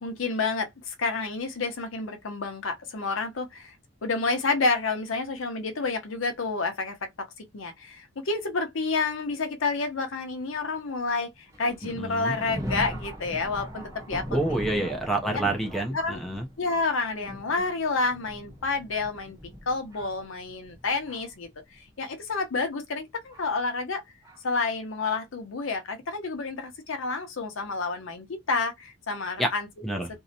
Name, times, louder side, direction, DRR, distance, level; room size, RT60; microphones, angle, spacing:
voice 1, 0.0-3.7 4.0-7.3 7.5-14.6 15.3-15.4 15.9-16.2 16.6-19.4 19.7-24.0 24.4-29.7, left 3 dB, 65° left, 0.6 m, -29 dB
Thunder, 11.5-21.4 22.2-22.3 23.3-23.5 24.2-24.4, equal, 15° right, 0.9 m, -40 dB
voice 2, 12.0-12.3 14.3-16.4 29.4-29.5 29.8-30.1, right 2 dB, ahead, 0.4 m, -28 dB
2.7 x 2.1 x 2.6 m
head